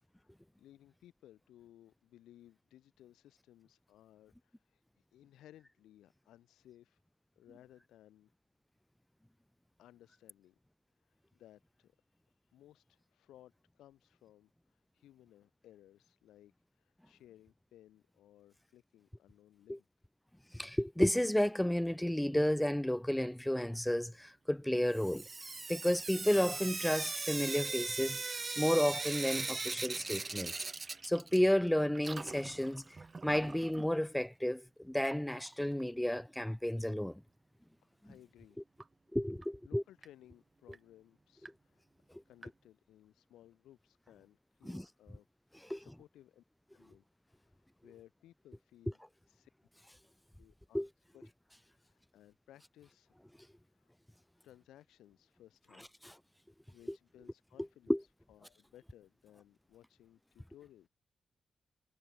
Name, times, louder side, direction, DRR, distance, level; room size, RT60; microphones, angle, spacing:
voice 1, 0.6-7.0 7.3-8.3 9.8-10.6 10.9-12.0 12.5-19.9 38.0-38.6 39.6-45.3 45.7-46.4 46.7-49.0 49.3-49.5 50.4-50.8 51.1-51.3 51.7-53.2 53.5-53.9 54.4-55.9 56.7-58.0 58.3-60.9, left 13 dB, 80° left, 3.1 m, -61 dB
voice 2, 20.5-25.2 25.7-30.5 31.0-32.8 33.2-37.2 39.1-39.8 44.7-44.8 45.7-45.8 50.7-50.9 56.0-56.1 57.9-58.0, left 1 dB, 5° left, 0.5 m, -32 dB
Sink (filling or washing) / Drip, 24.9-31.7 31.9-33.9 35.1-35.2 35.5-35.6 35.8-35.9 38.8-38.9 39.4-39.5 40.0-40.1 40.7-40.8 41.5-41.6 42.4-42.5, right 4 dB, 40° right, 0.6 m, -40 dB
hypercardioid pair, 40°, 0 cm